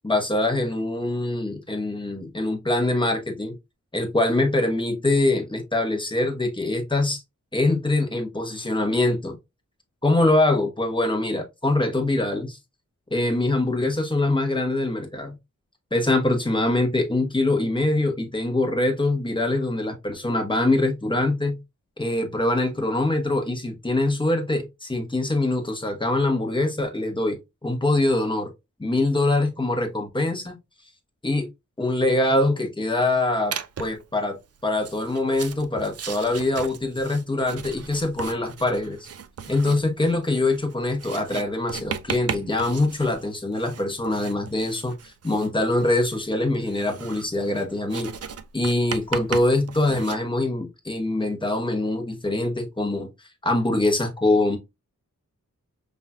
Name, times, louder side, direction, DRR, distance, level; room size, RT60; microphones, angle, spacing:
voice 1, 0.0-3.5 3.9-7.2 7.5-9.4 10.0-12.6 13.1-15.4 15.9-21.6 22.0-27.4 27.6-28.5 28.8-30.6 31.2-31.5 31.8-39.1 39.5-48.1 48.5-54.6, left 2 dB, 15° left, 1.1 m, -24 dB
Writing, 33.5-34.0 34.7-50.2, right 7 dB, 50° right, 0.4 m, -37 dB
5.6 x 3.1 x 2.4 m
wide cardioid pair, 110°, 31 cm